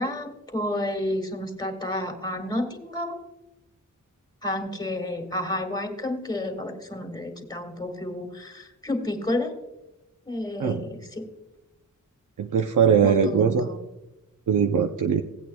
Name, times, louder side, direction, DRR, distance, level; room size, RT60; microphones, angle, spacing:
voice 1, 0.0-3.2 4.4-9.5 10.3-11.2 13.0-13.8, left 1 dB, 15° left, 3 dB, 2.0 m, -30 dB
voice 2, 12.4-13.7 14.5-15.2, right 7 dB, 75° right, 5 dB, 0.7 m, -21 dB
17.5 x 8.5 x 2.3 m, 0.93 s
wide cardioid pair, 115°, 31 cm